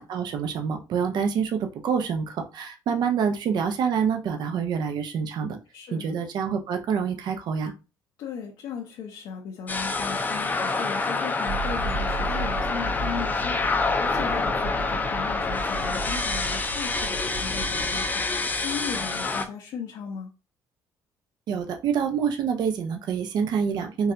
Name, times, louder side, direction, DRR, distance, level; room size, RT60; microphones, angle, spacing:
voice 1, 0.0-5.6 5.9-7.7 21.5-24.1, right 6 dB, 65° right, 0.6 m, -27 dB
voice 2, 5.7-6.1 8.2-20.3, left 6 dB, 75° left, 0.6 m, -37 dB
sound 1, 9.7-19.5, left 3 dB, 20° left, 0.5 m, -27 dB
sound 2, 11.5-18.1, right 2 dB, 85° right, 1.8 m, -35 dB
3.8 x 2.8 x 2.5 m
cardioid pair, 110°, 8 cm